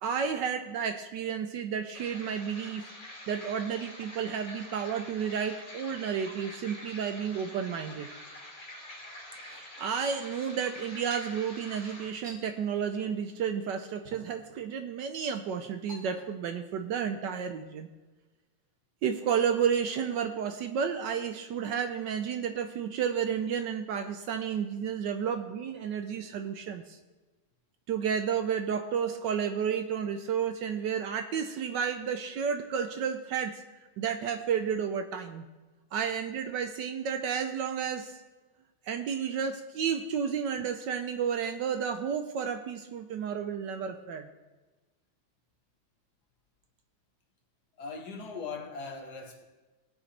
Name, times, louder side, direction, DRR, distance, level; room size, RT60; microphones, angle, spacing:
voice 1, 0.0-2.8 3.3-8.1 9.5-17.9 19.0-27.0 27.9-33.6 34.0-35.5 35.9-38.2 38.9-44.3, right 7 dB, 70° right, 1.2 m, -31 dB
sound 1, 1.9-12.1, left 1 dB, 40° left, 2.8 m, -46 dB
sound 2, 10.9-12.4 13.0-13.3 13.6-13.7 14.0-14.6 15.1-15.4 15.9-16.5 16.8-17.2, right 1 dB, 25° right, 1.7 m, -50 dB
voice 2, 47.8-49.4, left 4 dB, 60° left, 1.4 m, -39 dB
18.5 x 7.6 x 3.3 m
omnidirectional pair, 2.2 m